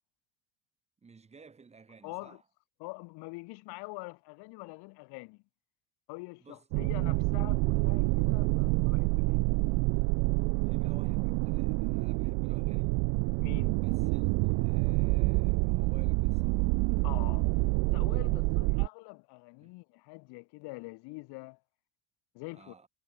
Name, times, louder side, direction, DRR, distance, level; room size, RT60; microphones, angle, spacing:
voice 1, 1.0-2.4 6.4-6.7 10.7-13.0 13.8-16.7 18.7-18.9 19.6-19.8 22.5-22.9, right 5 dB, 15° right, 1.8 m, -55 dB
voice 2, 2.0-2.4 2.8-5.4 6.1-9.4 13.4-13.8 17.0-17.5 17.9-21.6 22.3-22.7, left 26 dB, 80° left, 1.7 m, -45 dB
sound 1, 6.7-18.9, right 30 dB, 75° right, 0.5 m, -27 dB
cardioid pair, 155°, 39 cm